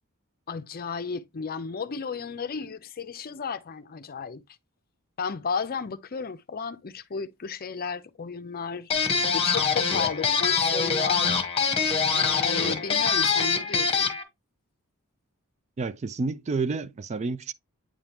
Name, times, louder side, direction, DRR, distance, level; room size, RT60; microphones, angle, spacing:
voice 1, 0.5-4.4 5.2-8.9 9.3-11.4 12.1-14.1, left 5 dB, 45° left, 0.6 m, -33 dB
sound 1, 8.9-14.2, left 5 dB, 25° left, 1.2 m, -24 dB
voice 2, 15.8-17.5, right 4 dB, 30° right, 0.3 m, -29 dB
8.9 x 3.6 x 2.9 m
head